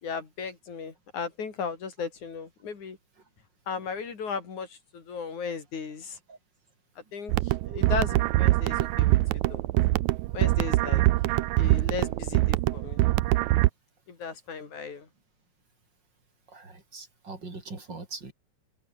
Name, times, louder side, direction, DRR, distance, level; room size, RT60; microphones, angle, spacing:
voice 1, 0.0-3.0 3.7-6.2 7.1-9.6 10.3-11.0 11.6-13.0 14.1-15.1, left 5 dB, 80° left, 5.4 m, -36 dB
sound 1, 7.3-13.7, right 18 dB, 80° right, 2.0 m, -24 dB
voice 2, 16.5-18.3, right 3 dB, 35° right, 6.2 m, -42 dB
omnidirectional pair, 3.4 m